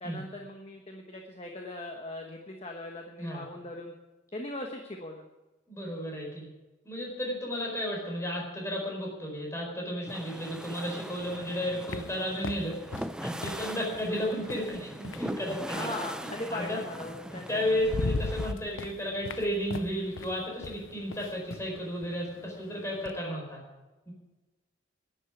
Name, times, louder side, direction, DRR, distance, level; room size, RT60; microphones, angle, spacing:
voice 1, 0.0-3.9 4.3-5.2 15.7-17.6, left 1 dB, 30° left, 2 dB, 1.2 m, -39 dB
voice 2, 5.7-6.4 6.8-16.0 16.2-16.8 17.3-23.6 24.1-24.2, equal, 15° left, -1 dB, 4.8 m, -33 dB
sound 1, 10.1-18.5, equal, 5° right, 0.4 m, -41 dB
sound 2, 11.2-15.8 17.0-17.1 17.5-23.2, left 3 dB, 85° left, 0.6 m, -39 dB
11.0 x 10.0 x 9.2 m, 1.2 s
head